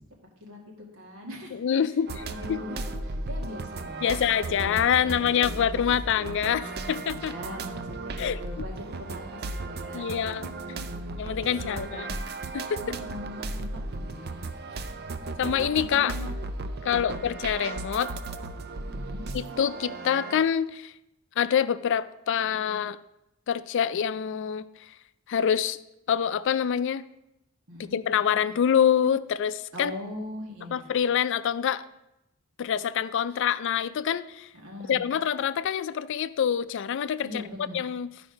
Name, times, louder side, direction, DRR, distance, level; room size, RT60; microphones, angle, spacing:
voice 1, 0.4-4.2 4.4-4.8 5.0-5.7 6.2-10.2 10.6-11.2 11.5-12.2 12.8-14.9 15.2-15.3 15.8-16.3 16.8-17.3 18.8-19.3 27.7-28.0 29.7-30.9 33.3-33.4 34.5-35.0 37.2-37.8, left 1 dB, 85° right, -1 dB, 2.1 m, -41 dB
voice 2, 1.6-2.6 4.0-7.3 8.2-8.4 9.9-10.5 11.2-12.1 12.5-12.8 15.4-16.1 16.8-18.1 19.3-20.9 21.4-23.0 23.5-24.6 25.3-25.8 26.1-27.0 27.9-29.9 30.7-31.8 32.6-34.5 34.9-37.3 37.7-38.1, left 8 dB, 60° left, 15 dB, 0.3 m, -26 dB
sound 1, 2.1-20.4, right 3 dB, 50° right, 0.5 m, -36 dB
11.0 x 4.9 x 5.1 m, 0.89 s
head